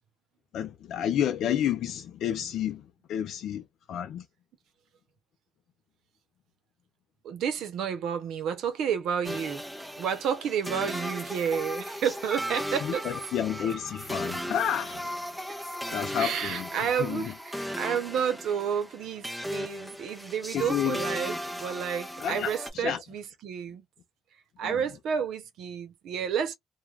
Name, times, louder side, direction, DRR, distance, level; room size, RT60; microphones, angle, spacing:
voice 1, 0.5-2.8 3.1-3.6 3.9-4.2 12.8-15.1 15.9-16.7 17.0-17.3 20.5-21.0 22.2-23.0 24.6-24.8, left 9 dB, 75° left, 0.4 m, -30 dB
voice 2, 7.2-9.6 10.0-13.1 16.1-23.8 24.6-26.5, right 8 dB, 80° right, 0.6 m, -30 dB
sound 1, 9.2-22.7, equal, 5° right, 0.6 m, -36 dB
2.3 x 2.1 x 3.1 m
cardioid pair, 90°, 0 cm